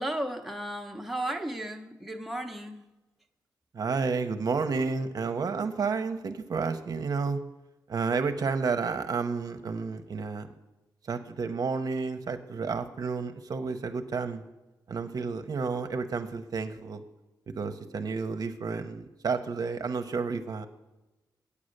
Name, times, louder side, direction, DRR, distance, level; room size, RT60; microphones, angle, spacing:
voice 1, 0.0-2.8, right 1 dB, ahead, 3 dB, 0.7 m, -34 dB
voice 2, 3.7-7.4 7.9-10.5 11.1-14.4 14.9-17.0 17.5-20.7, right 4 dB, 55° right, 7 dB, 0.7 m, -31 dB
8.6 x 8.4 x 6.5 m, 1.1 s
wide cardioid pair, 125°, 8 cm